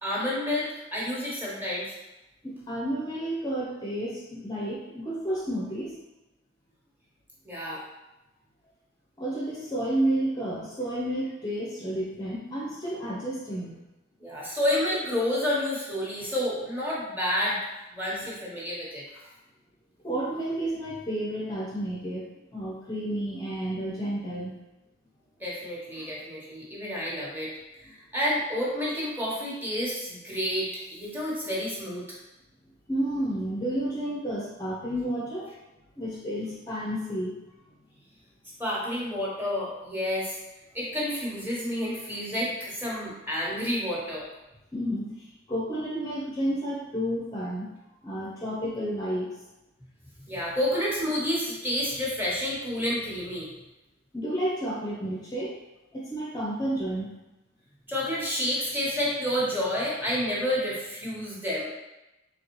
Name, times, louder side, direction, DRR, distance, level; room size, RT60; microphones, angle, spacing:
voice 1, 0.0-1.9 7.4-7.8 14.2-17.6 17.9-19.0 25.4-27.5 27.8-32.0 38.6-40.4 40.7-44.3 50.3-53.5 57.9-61.7, left 1 dB, 10° right, -6 dB, 1.1 m, -29 dB
voice 2, 2.4-6.0 9.2-13.8 20.0-22.2 22.5-24.5 32.9-35.5 36.0-37.4 44.7-47.7 48.0-49.4 54.1-55.5 55.9-57.1, right 1 dB, 20° left, -5 dB, 0.6 m, -31 dB
3.9 x 3.4 x 3.0 m, 0.98 s
head